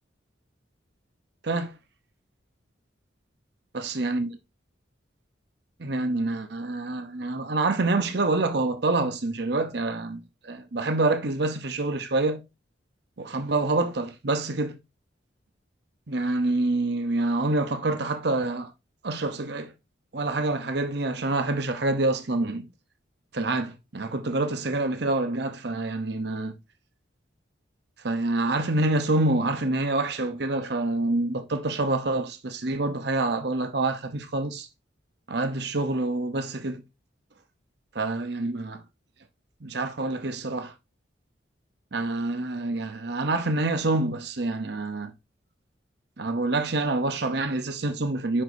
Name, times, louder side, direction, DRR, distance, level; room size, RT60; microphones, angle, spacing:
voice 1, 3.7-4.4 5.8-12.4 13.2-14.8 16.1-18.7 19.0-19.7 20.1-22.7 23.3-26.5 28.0-34.7 35.3-36.8 37.9-38.8 39.6-40.7 41.9-45.1 46.2-48.4, right 2 dB, 60° right, 0.8 m, -27 dB
7.6 x 6.0 x 2.7 m
head